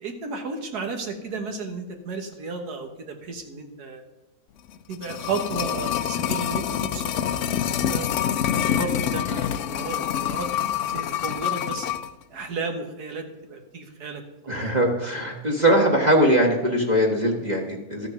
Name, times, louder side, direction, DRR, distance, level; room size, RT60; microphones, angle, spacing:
voice 1, 0.0-4.0 4.9-7.4 7.6-8.1 8.5-11.9 12.3-14.6, right 4 dB, 75° right, 5 dB, 1.8 m, -33 dB
sound 1, 4.7-12.1 12.4-12.5, left 10 dB, 70° left, 0.7 m, -26 dB
voice 2, 14.5-18.1, right 1 dB, 30° right, 0 dB, 1.3 m, -21 dB
13.5 x 6.6 x 5.9 m, 1.1 s
omnidirectional pair, 1.7 m